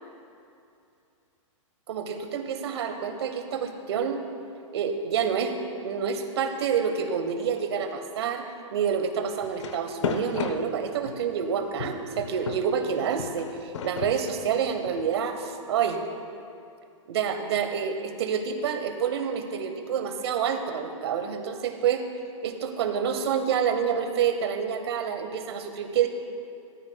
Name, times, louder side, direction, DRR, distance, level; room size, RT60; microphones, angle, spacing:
voice 1, 1.9-4.2 4.7-5.5 5.8-8.5 8.7-16.0 17.1-22.1 22.4-26.1, right 7 dB, 50° right, 6 dB, 1.1 m, -28 dB
sound 1, 9.4-11.3 11.8-15.1, left 6 dB, 60° left, 0.9 m, -34 dB
16.5 x 13.5 x 2.3 m, 2.6 s
hypercardioid pair, 170°, 17 cm